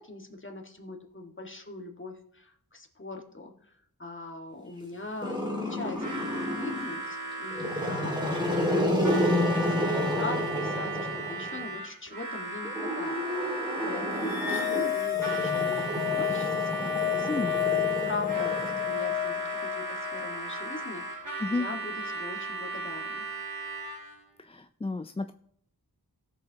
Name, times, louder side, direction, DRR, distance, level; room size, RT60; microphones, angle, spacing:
voice 1, 0.0-3.7 4.0-6.1 6.4-9.2 9.6-17.8 18.0-23.3, left 2 dB, 30° left, 2 dB, 1.7 m, -41 dB
Growling, 5.2-7.0 7.5-11.7 12.6-19.2, left 1 dB, 10° right, 2.1 m, -30 dB
Harmonica, 5.9-24.2, right 3 dB, 50° right, 2.5 m, -36 dB
sound 1, 14.2-20.8, left 13 dB, 70° left, 1.1 m, -31 dB
voice 2, 24.4-25.3, left 3 dB, 15° left, 9 dB, 0.4 m, -31 dB
18.0 x 6.7 x 2.9 m, 0.69 s
wide cardioid pair, 45°, 38 cm